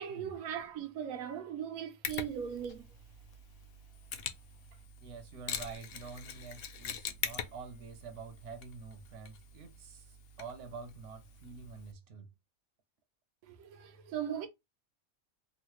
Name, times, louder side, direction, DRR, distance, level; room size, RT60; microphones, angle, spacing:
voice 1, 0.0-2.8 13.4-14.5, right 9 dB, 85° right, 1.1 m, -39 dB
Mechanisms, 2.0-11.9, left 7 dB, 65° left, 0.6 m, -44 dB
voice 2, 5.0-10.1 10.4-12.3, right 5 dB, 65° right, 1.0 m, -47 dB
3.7 x 2.1 x 3.0 m
omnidirectional pair, 1.4 m